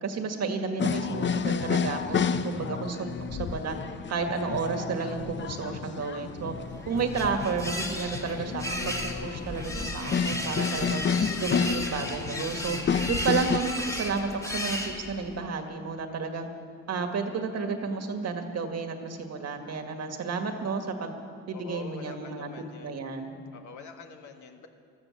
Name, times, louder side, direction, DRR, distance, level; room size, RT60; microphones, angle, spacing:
voice 1, 0.0-3.8 4.1-6.5 6.9-11.0 11.4-12.8 13.1-16.5 16.9-21.1 21.5-22.5 22.8-23.4, right 4 dB, 60° right, 5 dB, 1.8 m, -31 dB
sound 1, 0.8-13.6, left 6 dB, 40° left, 0.7 m, -31 dB
sound 2, 6.5-15.4, left 1 dB, 10° left, 1.7 m, -35 dB
voice 2, 21.5-23.0 23.5-24.7, left 6 dB, 75° left, 4 dB, 1.7 m, -45 dB
15.0 x 13.0 x 7.3 m, 2.2 s
cardioid pair, 90°, 30 cm